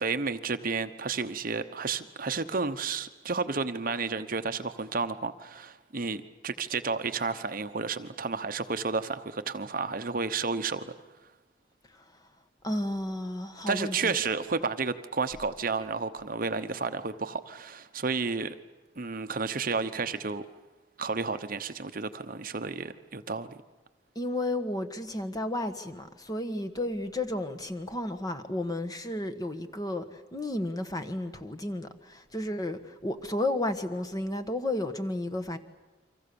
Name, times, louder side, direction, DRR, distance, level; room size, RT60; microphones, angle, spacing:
voice 1, 0.0-10.9 13.7-18.6 19.0-20.4 21.0-23.6, right 4 dB, 50° right, 1.0 m, -31 dB
voice 2, 12.6-14.2 24.1-35.6, left 1 dB, 20° left, 1.4 m, -32 dB
30.0 x 25.0 x 7.0 m
head